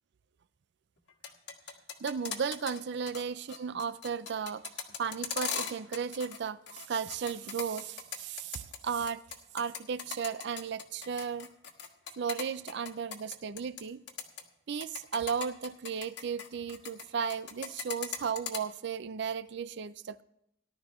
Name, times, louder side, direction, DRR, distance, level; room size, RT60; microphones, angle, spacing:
sound 1, 1.1-2.8 3.1-3.2 3.5-6.4 6.7-8.8 9.1-13.8 14.1-14.4 14.8-17.0 17.3-18.6, left 7 dB, 60° left, 1.6 m, -38 dB
voice 1, 2.0-9.2 9.5-11.5 12.2-14.0 14.7-20.2, right 6 dB, 60° right, 0.4 m, -35 dB
18.5 x 11.5 x 3.1 m
head